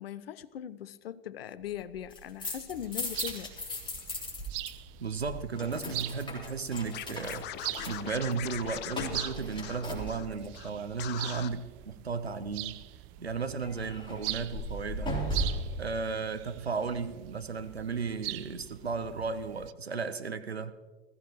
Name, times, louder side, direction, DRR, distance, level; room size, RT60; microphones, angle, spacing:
voice 1, 0.0-3.5, left 10 dB, 70° left, 0.6 m, -40 dB
sound 1, 2.0-4.7 5.0-10.6 13.6-15.8, equal, 15° left, 3.6 m, -37 dB
sound 2, 2.7-19.7, right 18 dB, 40° right, 0.6 m, -43 dB
voice 2, 5.0-7.5 7.9-12.8 13.2-15.2 15.8-20.7, right 5 dB, 90° right, 0.7 m, -34 dB
Scratching (performance technique), 6.9-10.3 10.5-10.7 11.0-11.5, left 12 dB, 35° left, 0.7 m, -40 dB
20.5 x 15.0 x 3.1 m
figure-of-eight pair, 80°, 31 cm